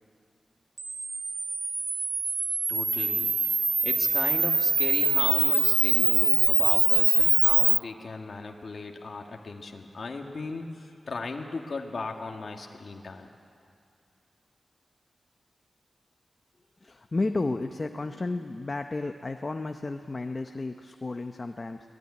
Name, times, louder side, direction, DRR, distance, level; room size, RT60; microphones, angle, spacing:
Camera, 0.8-7.8, right 4 dB, 45° right, 0.6 m, -23 dB
voice 1, 2.7-3.3 3.8-13.3, left 3 dB, 55° left, 2 dB, 1.7 m, -36 dB
voice 2, 16.8-21.9, left 2 dB, 30° left, 6 dB, 0.8 m, -32 dB
25.0 x 18.0 x 9.6 m, 2.4 s
wide cardioid pair, 130°, 0 cm